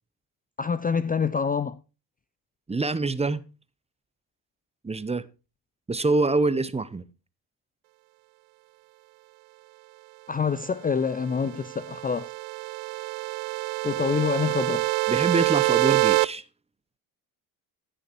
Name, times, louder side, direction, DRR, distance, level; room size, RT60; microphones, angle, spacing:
voice 1, 0.6-1.8 10.3-12.3 13.8-14.9, left 6 dB, 20° left, 0.5 m, -26 dB
voice 2, 2.7-3.4 4.8-5.2 5.9-7.0 15.1-16.4, right 3 dB, 15° right, 0.8 m, -25 dB
sound 1, 11.3-16.3, right 27 dB, 80° right, 0.5 m, -26 dB
14.5 x 6.6 x 4.5 m
supercardioid pair, 80°, 45 cm